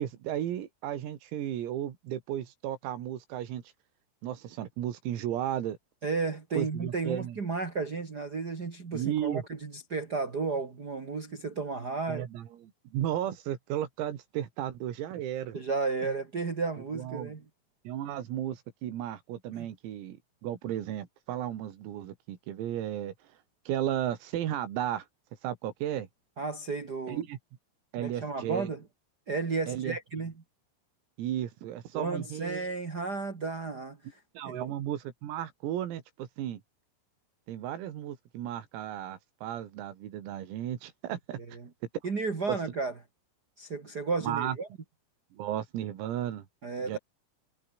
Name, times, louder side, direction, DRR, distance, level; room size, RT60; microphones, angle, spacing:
voice 1, 0.0-3.6 4.2-5.8 6.5-7.4 8.9-9.4 12.1-15.6 16.0-16.1 16.9-17.4 17.9-23.1 23.7-25.1 25.4-26.1 27.1-27.4 27.9-28.7 29.7-30.0 31.2-32.7 34.4-36.6 37.5-41.4 42.5-42.6 44.2-44.6 45.3-46.5 46.8-47.0, right 11 dB, 90° right, 5.3 m, -34 dB
voice 2, 6.0-12.2 15.5-17.4 19.5-19.7 26.4-27.2 28.0-28.8 29.3-30.3 31.9-34.2 34.4-34.7 41.5-41.7 42.0-42.9 43.6-44.7 46.6-47.0, right 4 dB, 50° right, 1.1 m, -33 dB
omnidirectional pair, 6.0 m